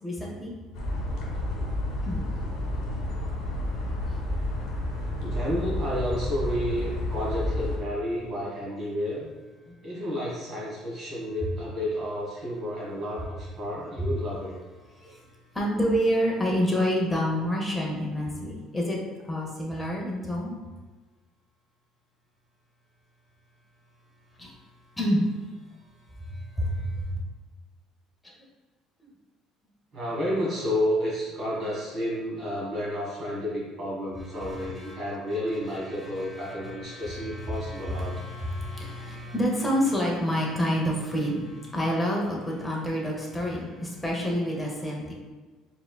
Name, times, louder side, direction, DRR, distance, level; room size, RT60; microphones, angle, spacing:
voice 1, 0.0-0.5 2.1-2.2 15.0-15.2 15.5-19.0 19.3-20.6 24.4-24.5 25.0-25.3 26.6-26.9 34.4-35.0 36.0-45.1, equal, 5° left, -3 dB, 0.7 m, -28 dB
sound 1, 0.7-7.8, left 1 dB, 70° left, 1.1 m, -30 dB
voice 2, 5.2-9.3 9.8-14.6 29.9-38.2, equal, 35° right, -5 dB, 1.5 m, -31 dB
4.6 x 3.6 x 2.3 m, 1.3 s
cardioid pair, 165°, 0 cm